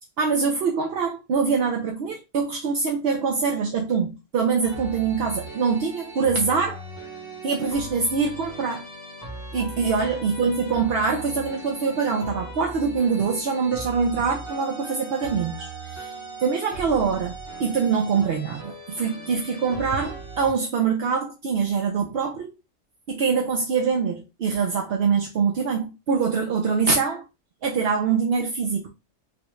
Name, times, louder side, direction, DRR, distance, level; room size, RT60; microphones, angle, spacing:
voice 1, 0.2-6.8 7.4-8.8 9.5-16.1 16.4-22.5 23.1-27.2 27.6-28.9, right 5 dB, 60° right, 0.7 m, -24 dB
sound 1, 4.6-20.5, right 2 dB, 15° right, 0.8 m, -38 dB
3.7 x 2.3 x 3.1 m
omnidirectional pair, 1.5 m